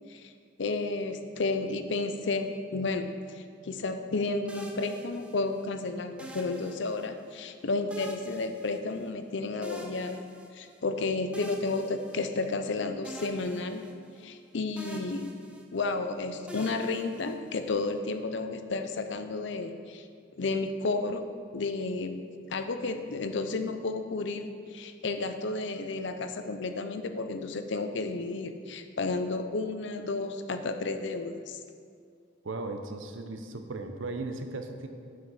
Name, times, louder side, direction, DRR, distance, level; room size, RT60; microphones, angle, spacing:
voice 1, 0.6-10.2 10.5-13.9 14.2-15.4 15.7-20.1 20.4-21.2 21.5-31.6, left 3 dB, 65° left, 8 dB, 0.6 m, -32 dB
sound 1, 4.5-5.6 6.2-7.3 7.9-9.3 9.6-10.8 11.3-12.7 13.0-14.4 14.8-16.0 16.5-17.8, right 1 dB, 5° right, 0.6 m, -46 dB
voice 2, 32.4-34.9, right 2 dB, 75° right, 6 dB, 0.7 m, -36 dB
7.6 x 6.2 x 5.6 m, 2.3 s
head